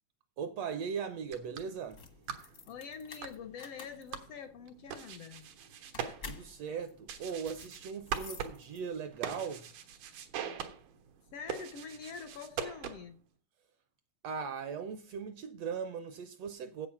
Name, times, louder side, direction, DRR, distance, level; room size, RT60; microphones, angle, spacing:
voice 1, 0.4-2.0 6.2-9.7 14.2-16.9, right 6 dB, 70° right, 1.6 m, -39 dB
sound 1, 1.2-13.2, right 8 dB, 90° right, 2.9 m, -43 dB
sound 2, 1.8-9.1, left 5 dB, 55° left, 0.8 m, -51 dB
voice 2, 2.7-5.5 11.3-13.2, left 6 dB, 75° left, 1.4 m, -45 dB
8.9 x 8.1 x 5.7 m
omnidirectional pair, 3.5 m